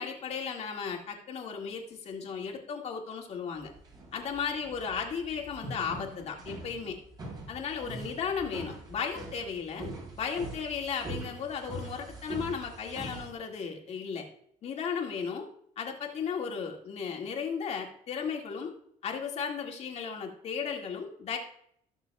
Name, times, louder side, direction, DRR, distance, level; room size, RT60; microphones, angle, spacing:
voice 1, 0.0-3.7 4.1-7.0 7.5-9.9 10.2-14.3 14.6-15.5 15.8-18.7 19.0-21.4, left 6 dB, 50° left, 1 dB, 2.0 m, -35 dB
sound 1, 3.6-13.3, right 2 dB, 30° right, 3.3 m, -43 dB
18.0 x 6.5 x 2.3 m, 0.68 s
cardioid pair, 145°, 14 cm